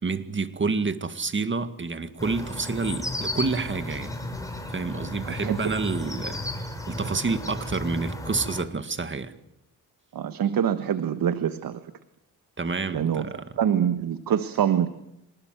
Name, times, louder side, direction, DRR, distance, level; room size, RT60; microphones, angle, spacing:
voice 1, 0.0-4.2 4.7-6.4 6.9-9.3 12.6-13.5, right 4 dB, 35° right, 10 dB, 2.1 m, -28 dB
sound 1, 2.2-8.6, left 1 dB, 10° left, 6.2 m, -34 dB
voice 2, 10.1-11.8 12.9-13.2 13.6-14.9, right 9 dB, 75° right, 11 dB, 1.4 m, -25 dB
26.0 x 20.0 x 7.8 m, 0.83 s
cardioid pair, 70°, 35 cm